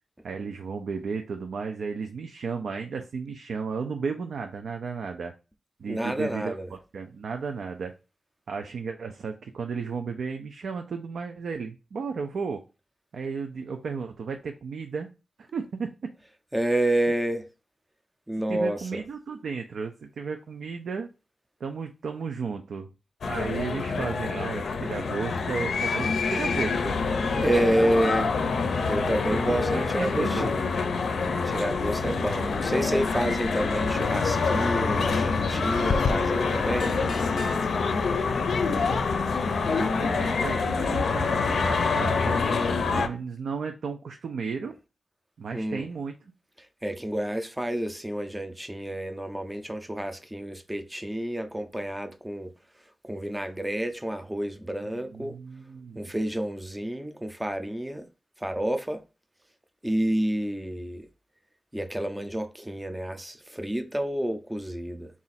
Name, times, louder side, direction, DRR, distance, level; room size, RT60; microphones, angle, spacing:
voice 1, 0.2-5.3 5.8-7.9 8.5-12.6 13.1-15.1 15.4-15.9 18.5-21.1 21.6-22.9 23.2-27.0 27.3-27.9 29.1-30.5 39.6-44.7 45.4-46.1 54.8-56.1, right 5 dB, 85° right, 0.4 m, -34 dB
voice 2, 5.8-6.7 16.5-17.4 18.3-19.0 27.4-28.3 28.9-30.6 31.5-36.9 45.5-45.9 46.8-52.5 53.0-55.3 56.0-58.1 58.4-59.0 59.8-61.1 61.7-65.1, right 1 dB, 5° right, 0.4 m, -29 dB
sound 1, 23.2-43.1, left 4 dB, 75° left, 0.5 m, -26 dB
3.9 x 2.4 x 4.1 m
wide cardioid pair, 165°, 0 cm